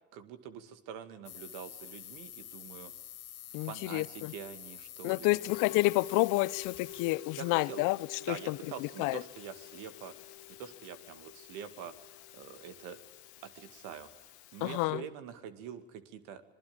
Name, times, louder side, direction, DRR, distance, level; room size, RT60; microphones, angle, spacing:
voice 1, 0.1-2.9 3.5-5.4 7.4-7.8 8.2-10.1 10.5-13.0 13.4-16.4, right 8 dB, 75° right, 2.3 m, -45 dB
sound 1, 1.2-7.2, left 12 dB, 50° left, 1.3 m, -48 dB
voice 2, 3.5-4.3 5.0-9.2 14.6-15.0, left 21 dB, 70° left, 0.8 m, -30 dB
Musical instrument, 5.4-14.8, left 14 dB, 85° left, 1.6 m, -48 dB
26.0 x 20.0 x 8.8 m
hypercardioid pair, 65°, 32 cm